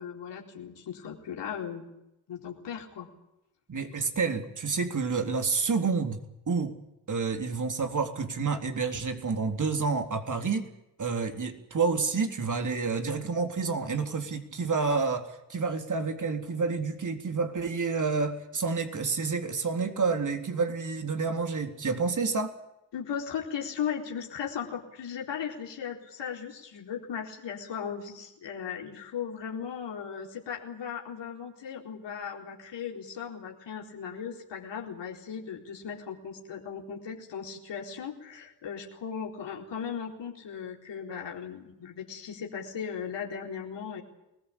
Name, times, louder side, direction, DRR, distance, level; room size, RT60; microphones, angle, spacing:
voice 1, 0.0-1.9 2.3-3.1 22.9-44.0, left 7 dB, 60° left, 0 dB, 4.3 m, -37 dB
voice 2, 3.7-6.8 7.1-10.7 11.0-22.5, right 4 dB, 35° right, 6 dB, 3.8 m, -29 dB
24.5 x 19.5 x 8.7 m, 0.88 s
hypercardioid pair, 50°, 49 cm